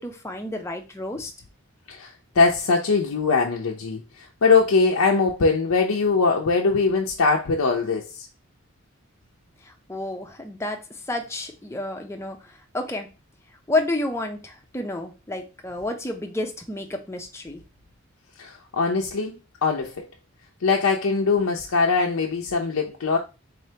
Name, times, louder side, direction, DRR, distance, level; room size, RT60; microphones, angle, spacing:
voice 1, 0.0-1.3 9.6-10.8 11.1-13.1 13.7-17.6, left 2 dB, 15° left, 0.6 m, -30 dB
voice 2, 1.9-8.3 18.4-20.1 20.6-23.2, left 4 dB, 90° left, 0.6 m, -22 dB
4.1 x 3.2 x 2.8 m
head